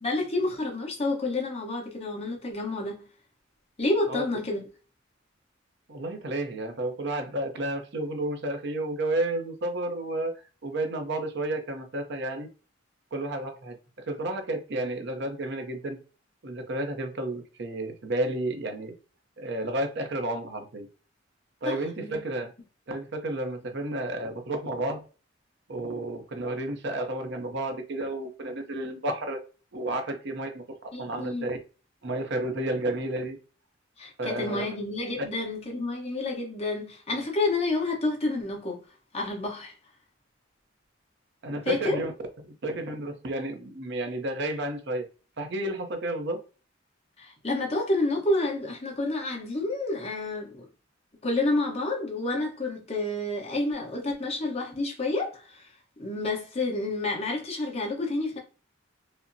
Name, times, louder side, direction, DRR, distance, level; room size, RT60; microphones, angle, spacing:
voice 1, 0.0-3.0 3.8-4.6 21.6-22.2 30.9-31.5 34.0-38.8 39.1-39.7 41.6-42.0 47.2-50.7 51.2-55.7 56.0-58.4, left 2 dB, 30° left, 1.0 m, -29 dB
voice 2, 5.9-10.3 10.6-12.5 13.1-16.0 16.4-18.9 19.4-20.9 21.6-22.5 22.9-25.0 25.7-29.4 29.7-31.6 32.0-33.4 34.2-34.7 35.2-35.3 41.4-42.1 42.4-45.1 45.4-46.4, right 1 dB, 60° right, 0.7 m, -31 dB
5.0 x 2.1 x 2.6 m
head